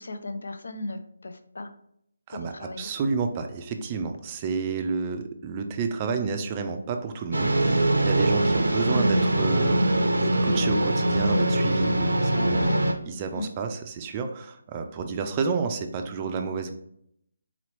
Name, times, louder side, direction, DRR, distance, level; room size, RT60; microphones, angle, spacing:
voice 1, 0.0-1.7 2.3-2.9 12.3-12.9 13.3-13.5, left 2 dB, 70° left, 8 dB, 0.4 m, -36 dB
voice 2, 2.3-12.8 13.1-16.7, right 5 dB, 25° right, 6 dB, 0.4 m, -30 dB
sound 1, 7.3-12.9, right 1 dB, 80° right, 0.5 m, -22 dB
3.9 x 2.9 x 3.0 m, 0.73 s
figure-of-eight pair, 155°, 0 cm